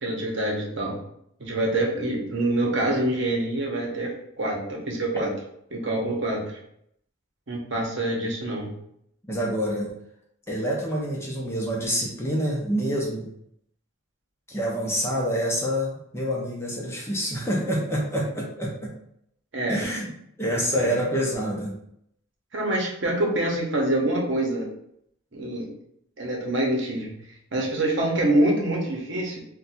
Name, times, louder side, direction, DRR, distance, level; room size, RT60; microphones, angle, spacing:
voice 1, 0.0-1.0 1.4-5.3 5.7-6.5 7.5-8.7 19.5-19.8 20.5-20.8 22.5-24.7 25.3-25.7 26.2-27.1 27.5-29.4, right 1 dB, 65° right, -1 dB, 0.8 m, -26 dB
voice 2, 9.3-9.9 10.5-13.3 14.5-18.9 19.7-20.1 20.4-21.7, equal, 15° left, -3 dB, 0.6 m, -27 dB
2.6 x 2.2 x 4.0 m, 0.72 s
head